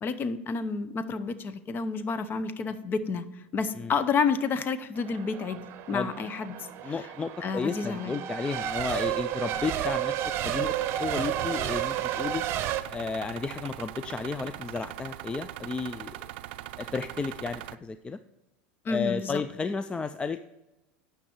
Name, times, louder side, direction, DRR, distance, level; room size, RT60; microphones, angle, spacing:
voice 1, 0.0-3.2 3.5-7.1 7.4-8.1 18.8-19.4, left 5 dB, 35° left, 13 dB, 0.7 m, -30 dB
Race car auto racing / Accelerating revving vroom / Mechanisms, 5.0-12.8, right 11 dB, 45° right, 0.8 m, -32 dB
voice 2, 6.8-12.4 12.9-16.2 16.8-18.2 18.9-20.5, left 4 dB, 15° left, 12 dB, 0.3 m, -33 dB
sound 1, 10.6-17.7, right 15 dB, 70° right, 0.4 m, -41 dB
9.8 x 5.8 x 4.4 m, 0.99 s
hypercardioid pair, 95°, 6 cm